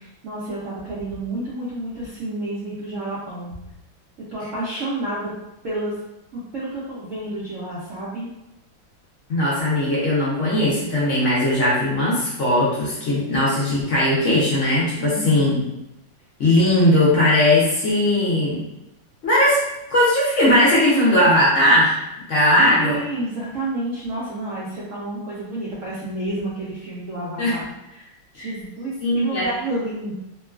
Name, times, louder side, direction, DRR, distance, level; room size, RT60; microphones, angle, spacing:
voice 1, 0.0-3.5 4.3-5.3 5.6-6.0 6.3-8.3 15.0-15.7 22.6-28.1 28.3-30.1, right 1 dB, 90° right, -7 dB, 0.6 m, -30 dB
voice 2, 9.3-15.6 16.4-18.6 19.2-19.6 19.9-21.9 22.3-23.0 27.4-27.6 28.3-28.5 29.0-29.5, left 1 dB, 65° left, -7 dB, 0.7 m, -18 dB
3.0 x 2.3 x 2.3 m, 0.89 s
omnidirectional pair, 2.1 m